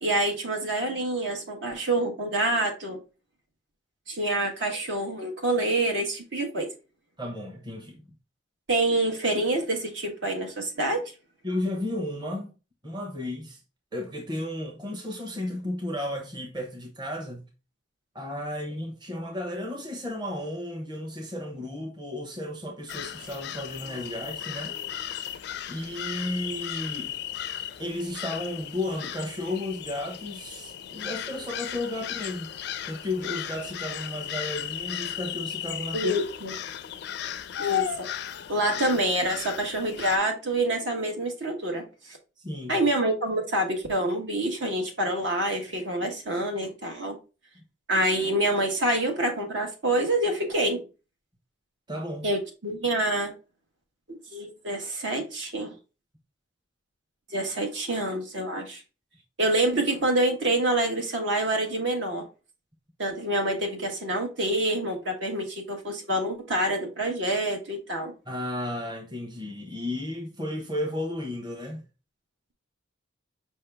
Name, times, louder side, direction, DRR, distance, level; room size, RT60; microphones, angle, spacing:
voice 1, 0.0-3.0 4.1-6.7 8.7-11.0 35.9-36.5 37.6-38.1 38.5-41.9 42.7-47.2 47.9-50.8 52.2-53.3 54.3-55.7 57.3-58.8 59.4-62.2 63.0-68.1, right 1 dB, 65° right, 1.2 m, -27 dB
voice 2, 7.2-8.1 11.4-12.5 12.8-13.6 13.9-17.5 18.1-24.7 25.7-27.1 27.8-32.5 32.9-36.1 42.4-42.8 51.9-52.3 68.3-71.8, left 1 dB, 25° right, 0.9 m, -33 dB
sound 1, 22.9-40.2, left 10 dB, 55° left, 0.4 m, -35 dB
5.5 x 2.8 x 3.3 m
head